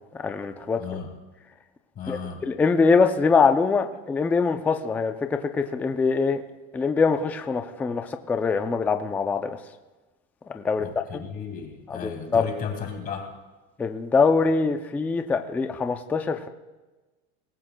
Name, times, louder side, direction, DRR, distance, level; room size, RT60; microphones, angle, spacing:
voice 1, 0.1-0.8 2.1-6.4 6.7-9.6 10.5-10.9 11.1-11.2 11.9-12.4 13.8-16.5, left 4 dB, 5° left, 7 dB, 0.3 m, -23 dB
voice 2, 0.8-1.1 2.0-2.4 10.8-13.3, left 6 dB, 25° left, 3 dB, 2.1 m, -34 dB
23.0 x 18.5 x 2.2 m, 1.2 s
supercardioid pair, 150°, 32 cm